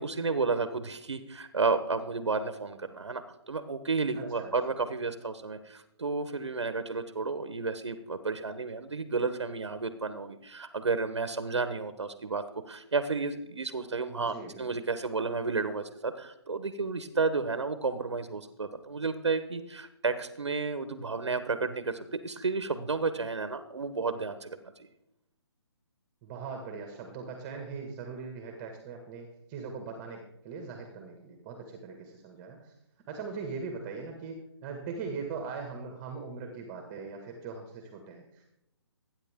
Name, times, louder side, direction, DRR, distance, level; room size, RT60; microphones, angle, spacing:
voice 1, 0.0-24.6, right 4 dB, 85° right, 10 dB, 1.3 m, -32 dB
voice 2, 4.2-4.5 14.2-14.6 26.2-32.7 33.1-38.4, right 5 dB, 25° right, 3 dB, 2.0 m, -40 dB
20.0 x 9.8 x 3.7 m, 0.83 s
hypercardioid pair, 145°, 14 cm